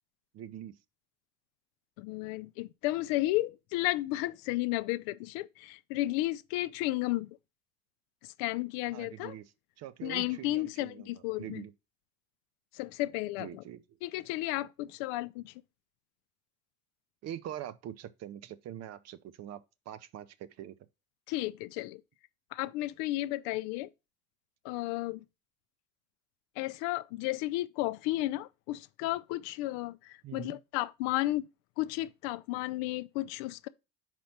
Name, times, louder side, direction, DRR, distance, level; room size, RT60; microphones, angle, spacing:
voice 1, 0.3-0.7 8.9-9.5 9.8-11.7 13.4-13.8 17.2-19.6 19.9-20.7 30.2-30.6, right 11 dB, 40° right, 0.6 m, -43 dB
voice 2, 2.0-7.4 8.4-9.4 10.0-11.7 12.7-13.6 14.0-15.5 21.3-22.0 22.5-23.9 24.6-25.2 26.6-31.5 31.8-33.7, left 17 dB, 55° left, 0.5 m, -33 dB
5.1 x 4.5 x 5.8 m
hypercardioid pair, 70°, 42 cm